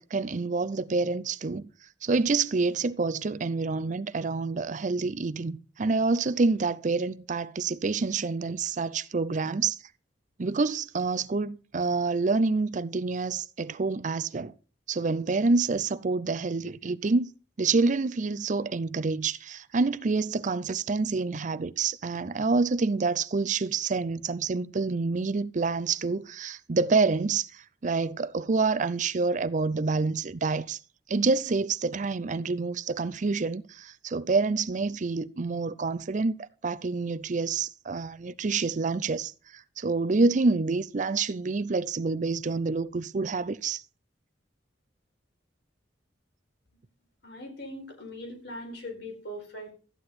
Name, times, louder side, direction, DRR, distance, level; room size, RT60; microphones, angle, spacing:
voice 1, 0.0-1.7 2.0-9.8 10.4-14.5 14.9-17.3 17.6-30.8 31.1-43.8, right 4 dB, 40° right, 0.5 m, -27 dB
voice 2, 47.2-49.7, left 1 dB, 65° left, 4.7 m, -40 dB
13.5 x 9.9 x 4.2 m
head